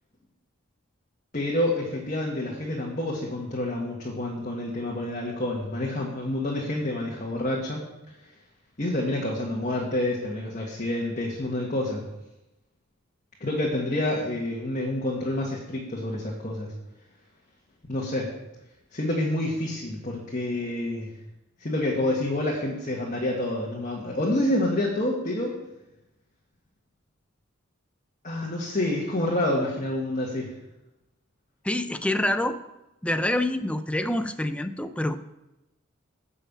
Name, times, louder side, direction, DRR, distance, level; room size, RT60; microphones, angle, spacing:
voice 1, 1.3-7.8 8.8-12.0 13.4-16.7 17.9-18.3 18.9-21.1 21.6-25.6 28.2-30.5, left 1 dB, 40° left, -3 dB, 1.6 m, -28 dB
voice 2, 31.6-32.6 33.0-35.2, left 1 dB, 5° left, 10 dB, 0.5 m, -26 dB
11.0 x 5.6 x 7.2 m, 0.96 s
head